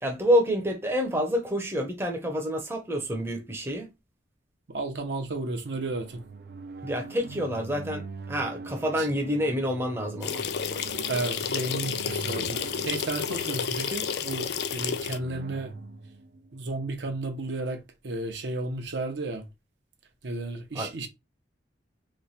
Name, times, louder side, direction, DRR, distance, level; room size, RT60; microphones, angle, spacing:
voice 1, 0.0-3.9 6.8-10.4 20.7-21.1, equal, 15° right, 0.6 m, -28 dB
voice 2, 4.7-6.2 9.0-9.1 11.1-12.6 12.8-15.7 16.5-19.4 20.2-21.1, right 2 dB, 75° right, 0.8 m, -33 dB
sound 1, 5.7-17.4, right 4 dB, 55° right, 0.4 m, -43 dB
sound 2, 10.2-15.2, left 7 dB, 60° left, 0.4 m, -31 dB
3.1 x 2.2 x 4.0 m
head